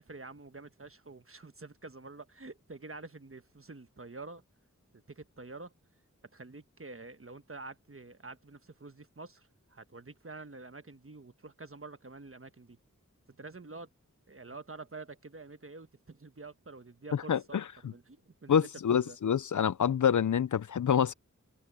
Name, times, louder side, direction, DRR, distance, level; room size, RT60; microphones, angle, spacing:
voice 1, 0.0-4.4 4.9-5.7 6.3-12.8 13.4-13.9 14.3-19.2, right 3 dB, 45° right, 1.3 m, -48 dB
voice 2, 17.3-17.6 18.5-21.1, left 8 dB, 70° left, 0.5 m, -27 dB
wide cardioid pair, 55°, 31 cm